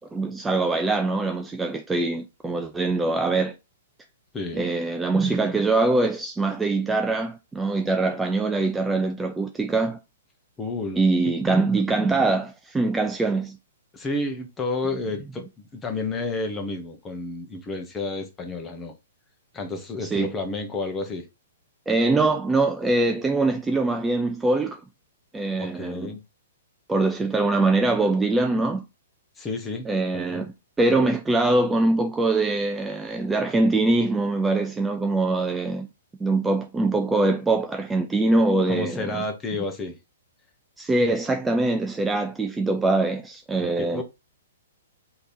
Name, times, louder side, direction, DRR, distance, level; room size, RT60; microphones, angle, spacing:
voice 1, 0.1-3.5 4.5-10.0 11.0-13.6 20.0-20.3 21.9-24.8 25.3-26.1 26.9-28.8 29.9-35.9 36.2-39.2 40.8-44.0, right 2 dB, 10° right, 0.4 m, -23 dB
voice 2, 4.3-4.7 10.6-11.0 13.9-18.9 19.5-21.3 25.6-26.2 29.4-29.9 30.1-30.5 38.7-40.0 43.6-44.0, left 3 dB, 15° left, 1.0 m, -31 dB
3.2 x 2.9 x 4.2 m
hypercardioid pair, 120°, 0 cm